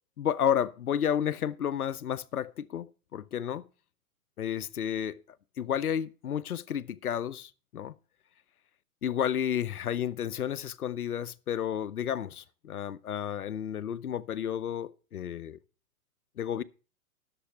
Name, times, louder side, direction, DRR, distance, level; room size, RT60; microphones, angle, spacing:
voice 1, 0.2-3.7 4.4-5.2 5.6-7.9 9.0-15.6 16.4-16.6, left 9 dB, 80° left, 0.7 m, -31 dB
11.0 x 7.0 x 5.6 m
figure-of-eight pair, 115°, 44 cm